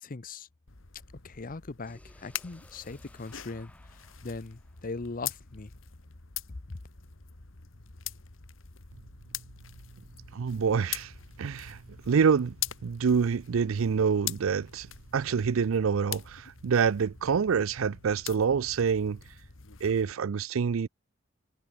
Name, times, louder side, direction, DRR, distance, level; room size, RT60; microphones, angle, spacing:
voice 1, 0.0-0.5 1.2-3.7 4.2-5.7, left 3 dB, 45° left, 0.8 m, -39 dB
sound 1, 0.7-20.1, left 11 dB, 70° left, 1.8 m, -43 dB
sound 2, 1.9-5.8, left 1 dB, 5° left, 2.5 m, -59 dB
voice 2, 10.3-11.1 11.4-11.8 12.1-12.6 12.8-14.9 15.1-19.2 19.8-20.9, right 6 dB, 75° right, 0.5 m, -26 dB
head